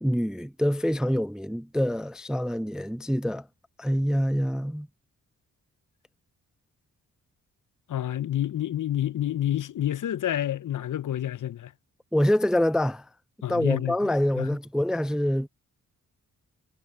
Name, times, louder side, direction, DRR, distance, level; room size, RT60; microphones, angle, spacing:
voice 1, 0.0-3.5 3.8-4.9 12.1-13.1 13.5-15.5, equal, ahead, 0.4 m, -25 dB
voice 2, 7.9-11.7 13.4-13.9 14.4-14.5, left 11 dB, 65° left, 0.7 m, -28 dB
cardioid pair, 70°, 34 cm